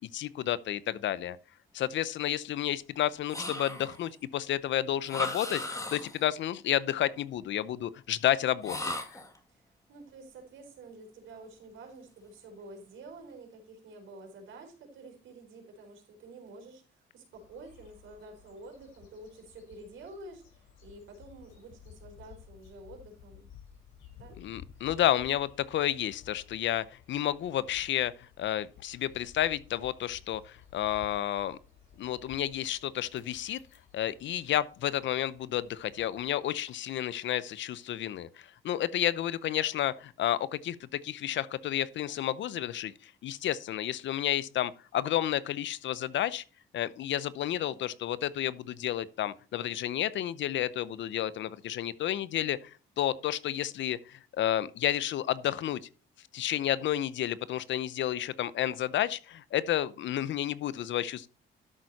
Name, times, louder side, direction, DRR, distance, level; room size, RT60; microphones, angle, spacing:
voice 1, 0.1-1.4 1.7-5.6 5.9-8.8 24.4-31.6 32.0-33.6 33.9-46.4 46.7-55.8 56.3-61.3, left 12 dB, 70° left, 0.7 m, -31 dB
sound 1, 3.3-4.1 5.1-6.3 8.6-9.4, left 2 dB, 15° left, 2.1 m, -36 dB
voice 2, 9.5-23.5 24.1-24.4 47.5-47.9, right 2 dB, 80° right, 4.3 m, -49 dB
sound 2, 17.3-36.3, left 9 dB, 85° left, 5.8 m, -55 dB
12.5 x 6.5 x 4.2 m
cardioid pair, 90°, 20 cm